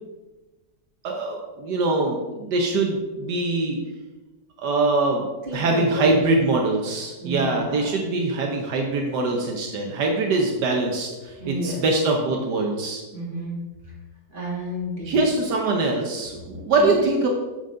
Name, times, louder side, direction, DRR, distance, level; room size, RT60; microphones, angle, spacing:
voice 1, 1.0-3.8 4.6-5.2 5.5-13.0 15.0-17.3, right 3 dB, 80° right, 1 dB, 1.6 m, -23 dB
voice 2, 5.4-6.4 7.2-7.9 11.4-11.8 13.1-13.6 14.3-15.2 16.8-17.0, equal, 30° right, -6 dB, 3.1 m, -31 dB
9.0 x 7.1 x 3.8 m, 1.2 s
omnidirectional pair, 1.8 m